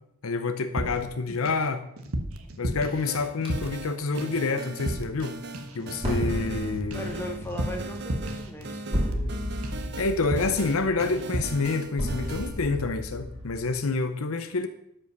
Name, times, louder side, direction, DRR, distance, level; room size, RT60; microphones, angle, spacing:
voice 1, 0.2-1.9 2.6-5.4 5.7-7.1 10.0-14.7, left 3 dB, 75° left, 0.8 m, -28 dB
sound 1, 0.8-1.7 2.0-3.9 4.2-4.5 4.8-5.3 5.5-9.4 9.6-9.9 10.2-10.7 11.0-11.6, right 1 dB, 75° right, 1.2 m, -33 dB
sound 2, 3.0-12.6, right 2 dB, 50° right, 0.9 m, -39 dB
sound 3, 3.4-3.7 6.0-13.7, equal, 25° right, 3.2 m, -34 dB
voice 2, 6.9-9.2, equal, 10° left, 1.8 m, -38 dB
12.5 x 5.5 x 6.6 m
head